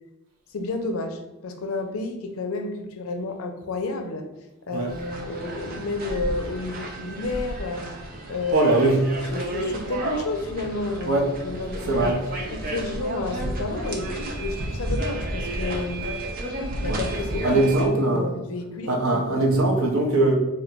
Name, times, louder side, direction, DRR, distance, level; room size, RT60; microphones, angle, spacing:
voice 1, 0.5-4.3 4.7-7.9 8.3-8.7 9.3-12.2 12.5-16.0 16.8-19.5, left 2 dB, 85° left, 6 dB, 0.4 m, -31 dB
sound 1, 4.9-17.9, right 1 dB, 45° right, 0.5 m, -32 dB
voice 2, 8.5-9.2 11.1-11.3 11.9-12.2 16.9-17.0 17.4-18.3 18.9-20.3, right 2 dB, 80° right, 0 dB, 0.7 m, -21 dB
2.5 x 2.2 x 3.8 m, 1.0 s
head